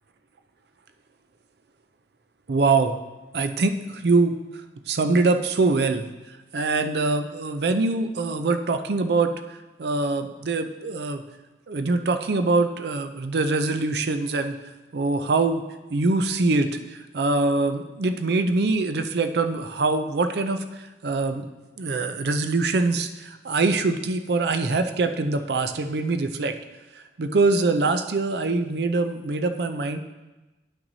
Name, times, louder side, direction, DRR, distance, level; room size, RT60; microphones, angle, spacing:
voice 1, 2.5-2.9 3.3-4.4 4.9-6.1 6.5-11.2 11.7-14.6 14.9-15.6 15.9-21.5 21.8-26.6 26.9-30.0, right 3 dB, 65° right, 9 dB, 0.5 m, -24 dB
11.5 x 5.8 x 2.7 m, 1.1 s
head